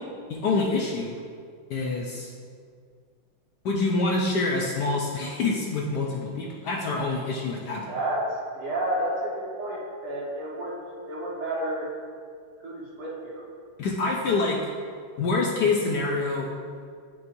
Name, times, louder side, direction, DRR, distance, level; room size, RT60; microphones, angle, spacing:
voice 1, 0.3-1.2 1.7-2.3 3.6-7.8 13.8-14.6 15.2-16.5, left 3 dB, 70° left, -1 dB, 1.0 m, -26 dB
voice 2, 7.9-10.8 11.1-11.9 12.6-13.4, right 1 dB, 90° right, -6 dB, 2.4 m, -30 dB
9.3 x 5.5 x 2.6 m, 2.1 s
omnidirectional pair, 2.3 m